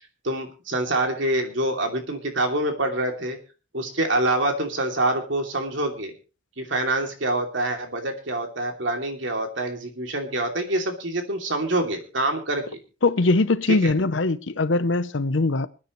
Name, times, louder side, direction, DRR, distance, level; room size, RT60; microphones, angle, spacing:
voice 1, 0.2-3.4 3.7-6.1 6.6-12.8 13.8-13.9, right 1 dB, 70° right, 2.8 m, -26 dB
voice 2, 13.0-15.7, left 3 dB, 65° left, 0.8 m, -21 dB
26.0 x 9.6 x 3.1 m
head